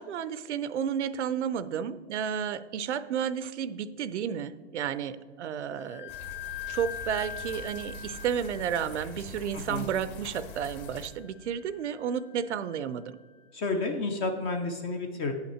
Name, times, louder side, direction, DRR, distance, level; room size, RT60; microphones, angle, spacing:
voice 1, 0.0-6.1 6.7-13.2, right 8 dB, 75° right, 15 dB, 0.6 m, -32 dB
Wind instrument woodwind instrument, 5.7-13.2, left 9 dB, 90° left, 1.8 m, -44 dB
sound 1, 6.1-11.1, left 2 dB, 35° left, 1.1 m, -44 dB
voice 2, 13.5-15.3, left 3 dB, 15° left, 5 dB, 0.4 m, -30 dB
9.2 x 5.8 x 4.3 m, 1.6 s
hypercardioid pair, 130°, 35 cm